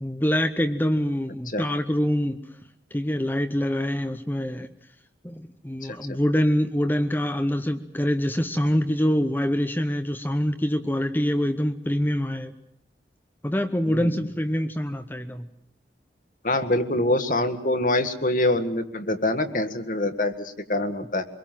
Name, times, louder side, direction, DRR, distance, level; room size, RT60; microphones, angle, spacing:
voice 1, 0.0-2.4 2.9-4.7 5.2-12.5 13.4-15.5, equal, 10° left, 8 dB, 0.9 m, -25 dB
voice 2, 16.4-21.3, left 1 dB, 50° left, 8 dB, 1.8 m, -25 dB
25.5 x 22.0 x 7.6 m, 0.73 s
head